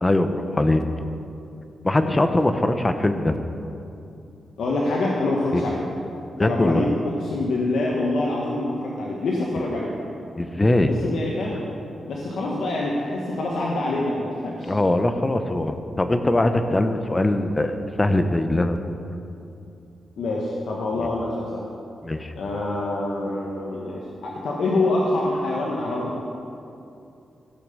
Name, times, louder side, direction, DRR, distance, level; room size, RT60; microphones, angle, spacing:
voice 1, 0.0-0.8 1.8-3.4 5.5-5.6 6.3-6.9 10.4-10.9 14.7-18.8 21.0-21.1 22.0-22.3, left 1 dB, 25° left, 8 dB, 0.8 m, -21 dB
voice 2, 4.6-5.8 6.4-9.9 10.9-11.7 12.1-14.7 20.2-21.6 22.4-26.2, left 2 dB, 80° left, -3 dB, 1.2 m, -26 dB
14.0 x 5.8 x 6.6 m, 2.7 s
cardioid pair, 70°, 0 cm